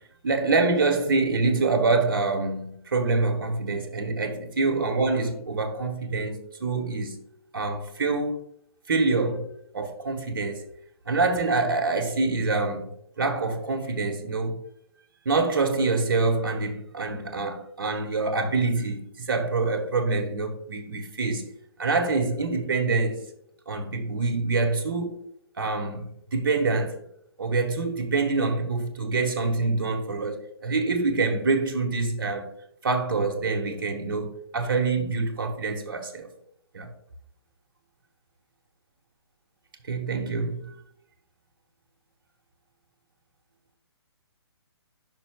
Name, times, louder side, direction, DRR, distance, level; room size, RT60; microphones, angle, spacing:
voice 1, 0.2-7.2 7.5-8.4 8.9-9.5 9.7-10.7 11.1-12.9 13.2-14.6 15.2-21.5 21.8-23.2 23.7-25.2 25.6-27.0 27.4-32.5 32.8-36.3 36.7-36.9 39.9-40.7, right 3 dB, 55° right, 1.5 m, -26 dB
10.0 x 5.8 x 2.3 m
figure-of-eight pair, 130°, 14 cm